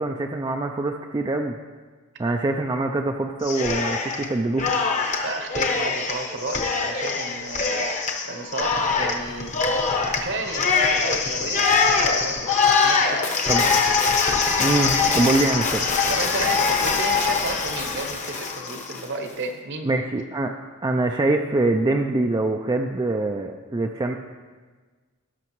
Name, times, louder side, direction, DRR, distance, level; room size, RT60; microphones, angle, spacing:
voice 1, 0.0-1.5 2.2-4.7 13.5-13.6 14.6-15.9 19.8-20.5 20.8-24.2, right 2 dB, 20° right, 3 dB, 0.3 m, -24 dB
Cheering, 3.4-4.3 4.6-19.0, left 4 dB, 35° left, 0.8 m, -23 dB
voice 2, 5.2-7.9 8.2-9.5 10.2-12.5 12.8-13.8 16.1-20.0, right 2 dB, 55° right, 5 dB, 1.0 m, -32 dB
17.5 x 6.1 x 3.1 m, 1.4 s
head